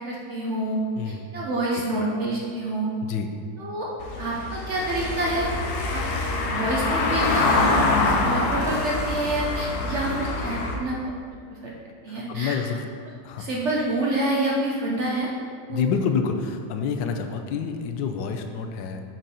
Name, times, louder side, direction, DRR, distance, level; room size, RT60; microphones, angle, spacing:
voice 1, 0.0-2.9 3.6-3.9 4.2-5.5 5.9-6.0 6.5-7.6 8.0-11.0 11.5-11.7 12.0-12.6 13.4-15.3 15.7-15.8, right 1 dB, 60° right, -3 dB, 0.7 m, -27 dB
voice 2, 1.0-1.3 3.0-3.3 12.1-12.8 13.2-13.5 15.7-19.0, left 6 dB, 90° left, 5 dB, 1.3 m, -28 dB
Car passing by / Engine, 4.0-10.8, left 2 dB, 65° left, 1.1 m, -25 dB
6.2 x 3.9 x 4.2 m, 2.1 s
omnidirectional pair, 1.9 m